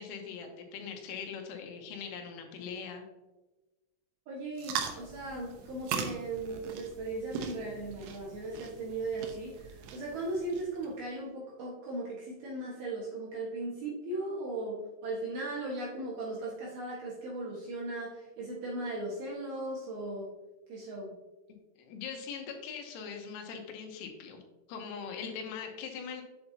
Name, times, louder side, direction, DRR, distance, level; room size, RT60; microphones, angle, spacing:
voice 1, 0.0-3.0 21.8-24.4 24.7-26.2, left 6 dB, 80° left, 3 dB, 3.4 m, -41 dB
voice 2, 4.3-20.3 20.7-21.1, right 2 dB, 65° right, -4 dB, 2.5 m, -37 dB
sound 1, 4.6-10.9, right 7 dB, 85° right, 2.3 m, -40 dB
8.7 x 7.9 x 2.8 m, 1.1 s
omnidirectional pair, 6.0 m